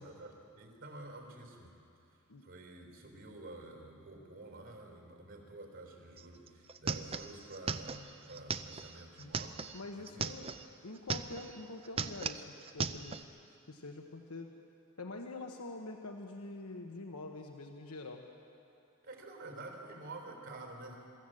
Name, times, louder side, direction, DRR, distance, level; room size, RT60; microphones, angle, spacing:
voice 1, 0.0-1.8 2.4-10.7 19.0-21.0, right 2 dB, 55° right, 3 dB, 3.8 m, -49 dB
sound 1, 6.2-6.3 6.5-10.6 11.0-11.6 11.8-13.2, right 5 dB, 25° right, 0.5 m, -38 dB
voice 2, 9.7-10.5 10.8-13.2 13.7-14.5 15.0-18.2, left 2 dB, 80° left, 3 dB, 1.2 m, -45 dB
23.5 x 14.5 x 7.8 m, 2.7 s
head